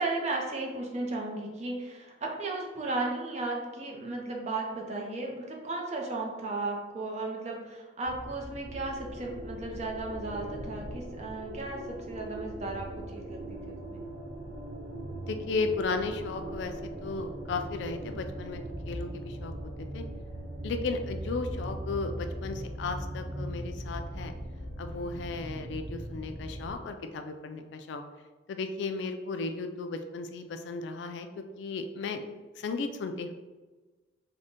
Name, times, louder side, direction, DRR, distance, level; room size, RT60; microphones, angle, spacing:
voice 1, 0.0-14.0, right 2 dB, 35° right, 0 dB, 0.5 m, -35 dB
sound 1, 8.0-26.8, right 1 dB, 90° right, 0.9 m, -39 dB
voice 2, 15.2-16.8 17.0-19.5 19.9-20.0 20.6-24.3 24.8-28.0 28.5-32.3 32.6-33.3, left 3 dB, 65° left, 7 dB, 0.3 m, -35 dB
3.8 x 2.1 x 3.6 m, 1.3 s
head